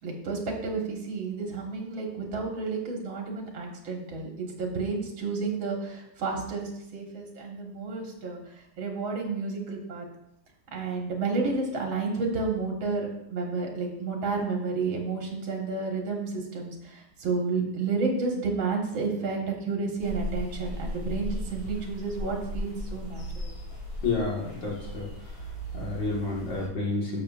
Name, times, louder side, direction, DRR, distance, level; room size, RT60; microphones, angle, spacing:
voice 1, 0.0-10.1 10.7-23.5, right 4 dB, 75° right, 0 dB, 2.4 m, -31 dB
sound 1, 20.0-26.7, left 1 dB, 80° left, 2.9 m, -37 dB
voice 2, 24.0-25.1 25.7-27.2, left 3 dB, 65° left, -3 dB, 2.5 m, -30 dB
12.5 x 6.4 x 2.5 m, 0.79 s
omnidirectional pair, 2.2 m